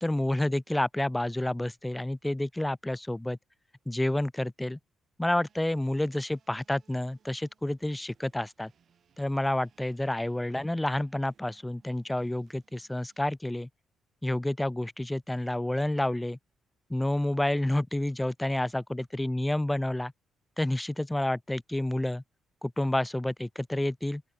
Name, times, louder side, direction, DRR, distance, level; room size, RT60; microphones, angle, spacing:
voice 1, 0.0-3.4 3.9-4.8 5.2-8.7 9.2-13.7 14.2-16.4 16.9-20.1 20.6-22.2 22.6-24.2, left 1 dB, 10° left, 0.4 m, -29 dB
sound 1, 5.4-13.3, right 7 dB, 55° right, 3.0 m, -68 dB
open air
cardioid pair, 90°, 0 cm